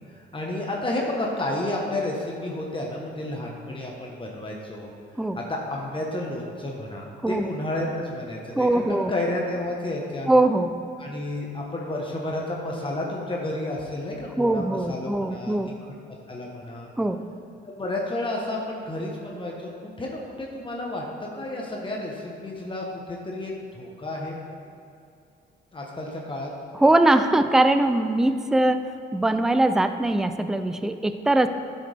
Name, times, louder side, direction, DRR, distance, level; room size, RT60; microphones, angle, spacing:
voice 1, 0.1-4.9 5.4-10.3 11.0-15.5 16.3-16.9 17.8-19.5 19.8-24.4 25.7-26.5, left 1 dB, 25° left, -2 dB, 1.3 m, -31 dB
voice 2, 8.6-9.1 10.3-10.8 14.4-15.7 17.0-17.3 26.7-31.5, right 2 dB, ahead, 9 dB, 0.4 m, -21 dB
11.5 x 6.5 x 3.5 m, 2.6 s
cardioid pair, 90°, 20 cm